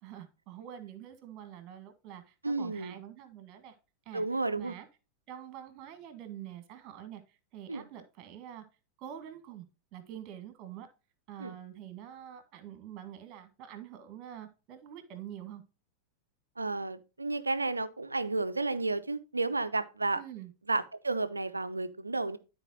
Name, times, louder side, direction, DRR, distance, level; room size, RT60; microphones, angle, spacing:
voice 1, 0.0-3.8 4.1-4.2 4.6-4.9 5.3-8.6 9.0-9.6 9.9-10.9 11.3-15.6 20.1-20.5, right 10 dB, 35° right, 1.8 m, -46 dB
voice 2, 2.4-3.0 4.1-4.8 7.7-7.9 11.4-11.5 16.6-20.2 20.7-22.4, right 3 dB, 80° right, 0.6 m, -32 dB
13.0 x 4.5 x 2.7 m
figure-of-eight pair, 90°, 0 cm